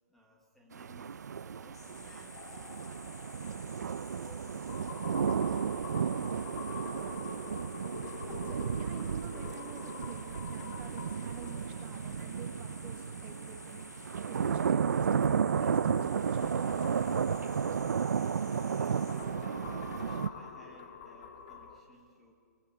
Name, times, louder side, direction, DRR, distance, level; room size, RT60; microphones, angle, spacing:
voice 1, 0.1-5.0 18.4-22.3, equal, ahead, 0 dB, 1.4 m, -59 dB
sound 1, 0.7-20.3, right 7 dB, 90° right, 0.6 m, -33 dB
sound 2, 1.7-19.3, left 4 dB, 80° left, 6.6 m, -52 dB
sound 3, 2.3-12.9 14.9-21.8, left 6 dB, 30° left, 1.7 m, -47 dB
voice 2, 8.0-15.3 15.6-16.7, right 6 dB, 15° right, 4 dB, 1.5 m, -50 dB
24.0 x 18.5 x 6.9 m, 2.2 s
hypercardioid pair, 170°, 9 cm